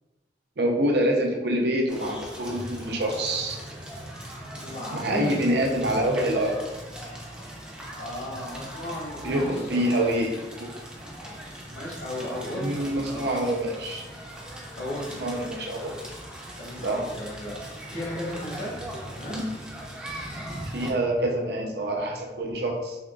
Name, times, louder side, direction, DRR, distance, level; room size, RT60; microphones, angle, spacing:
voice 1, 0.6-3.6 4.9-6.6 9.2-10.7 12.6-14.0 15.2-16.0 16.8-17.0 19.3-19.5 20.7-23.0, right 1 dB, 60° right, 1 dB, 0.5 m, -26 dB
Crackle, 1.9-20.9, right 1 dB, 5° right, 0.4 m, -40 dB
voice 2, 4.5-5.6 8.0-10.1 11.7-13.3 14.8-15.1 16.6-18.7 19.2-19.5, left 1 dB, 65° left, -5 dB, 1.2 m, -35 dB
3.5 x 2.9 x 2.3 m, 1.1 s
head